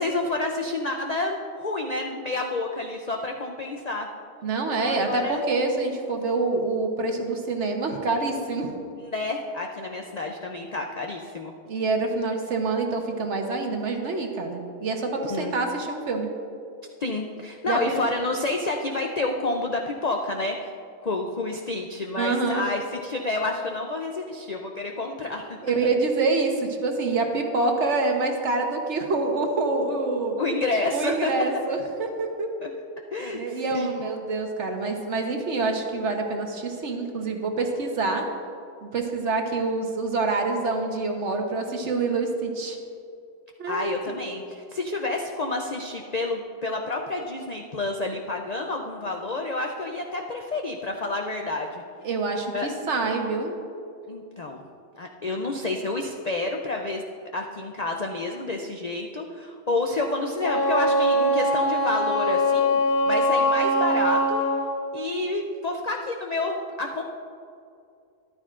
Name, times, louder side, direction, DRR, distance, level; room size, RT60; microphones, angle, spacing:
voice 1, 0.0-4.1 4.7-5.4 9.1-11.5 15.3-15.5 17.0-20.7 21.0-25.6 30.4-31.3 33.1-34.1 43.7-51.8 52.5-52.7 54.1-54.6 54.9-57.0 57.3-64.4 64.9-67.0, left 2 dB, 65° left, 2 dB, 0.4 m, -29 dB
voice 2, 4.4-8.7 11.7-16.3 17.7-17.8 22.2-22.6 25.6-30.4 30.9-32.5 33.3-38.2 38.8-42.8 43.6-44.1 52.0-53.5, right 3 dB, 55° right, 3 dB, 1.2 m, -26 dB
Wind instrument woodwind instrument, 60.4-64.7, equal, 80° left, 1.7 m, -22 dB
13.5 x 11.0 x 2.5 m, 2.4 s
omnidirectional pair, 1.5 m